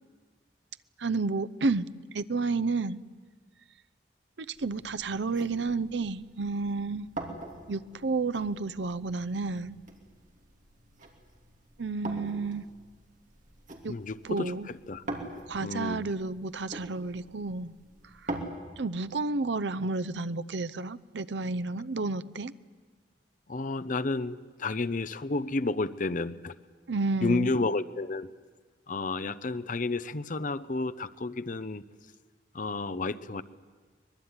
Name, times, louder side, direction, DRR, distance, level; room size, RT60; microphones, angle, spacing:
voice 1, 1.0-1.9 2.1-3.0 4.4-7.1 7.7-9.8 11.8-12.6 13.8-13.9 14.3-14.7 15.5-17.7 18.2-18.3 18.8-22.5 26.9-27.5, right 3 dB, 70° right, 15 dB, 0.7 m, -31 dB
sound 1, 4.5-18.4, right 2 dB, 45° right, 3.0 m, -44 dB
voice 2, 13.9-15.0 15.6-16.1 23.5-26.6 27.2-28.3 28.9-31.8 32.5-33.4, left 3 dB, 45° left, 15 dB, 0.7 m, -31 dB
23.5 x 21.0 x 9.7 m, 1.5 s
head